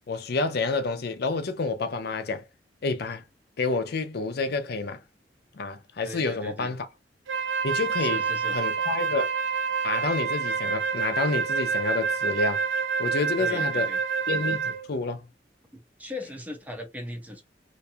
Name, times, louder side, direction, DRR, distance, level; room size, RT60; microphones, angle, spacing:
voice 1, 0.1-2.5 2.8-3.2 3.6-5.0 5.5-6.9 7.6-9.3 9.8-12.6 13.0-13.9 14.3-15.2, left 3 dB, 60° left, 0.5 m, -29 dB
voice 2, 6.0-6.7 8.0-8.6 13.4-14.0 15.7-17.4, left 1 dB, 10° right, 0.6 m, -38 dB
Wind instrument woodwind instrument, 7.3-14.9, right 5 dB, 90° right, 0.5 m, -27 dB
2.6 x 2.3 x 2.6 m
head